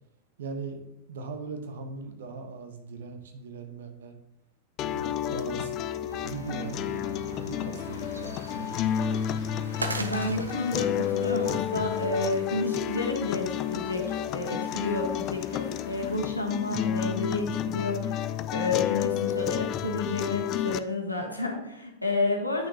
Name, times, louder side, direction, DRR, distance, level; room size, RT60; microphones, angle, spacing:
voice 1, 0.4-4.1 4.8-5.7 6.2-8.7, right 4 dB, 60° right, 6 dB, 1.0 m, -39 dB
sound 1, 4.8-20.8, left 10 dB, 35° left, 0.3 m, -31 dB
sound 2, 6.1-12.3, right 2 dB, 80° right, 0.6 m, -40 dB
sound 3, 7.8-16.2, left 4 dB, 55° left, 1.4 m, -52 dB
voice 2, 10.0-22.7, left 2 dB, 85° left, 1 dB, 1.3 m, -30 dB
8.8 x 6.1 x 2.9 m, 0.81 s
figure-of-eight pair, 90°, 0 cm